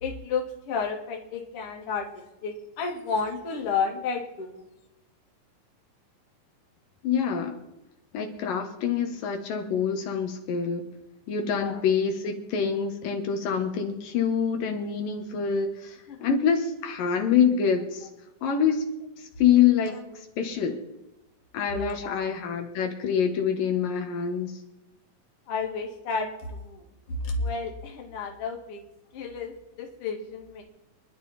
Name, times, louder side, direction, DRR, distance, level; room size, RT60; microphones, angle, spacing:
voice 1, 0.0-4.6 11.5-11.8 16.1-16.3 21.7-22.3 25.5-28.8 29.1-30.6, left 4 dB, 45° left, 2 dB, 2.6 m, -32 dB
voice 2, 7.0-7.6 8.1-10.8 11.3-18.1 18.4-18.8 19.4-20.8 21.5-24.6, left 7 dB, 80° left, 4 dB, 3.0 m, -26 dB
26.0 x 11.0 x 4.3 m, 0.94 s
omnidirectional pair, 3.9 m